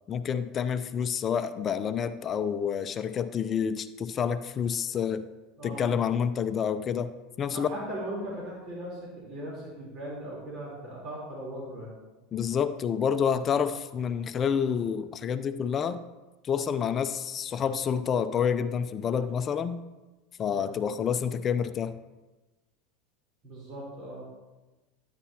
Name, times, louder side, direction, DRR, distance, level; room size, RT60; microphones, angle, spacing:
voice 1, 0.1-5.3 5.6-7.7 12.3-16.0 16.4-19.8 20.4-22.0, left 7 dB, 35° left, 11 dB, 0.6 m, -28 dB
voice 2, 7.5-11.9 20.5-20.7 23.4-24.3, right 1 dB, 50° right, -4 dB, 3.7 m, -38 dB
12.5 x 9.5 x 2.9 m, 1.1 s
hypercardioid pair, 85°, 0 cm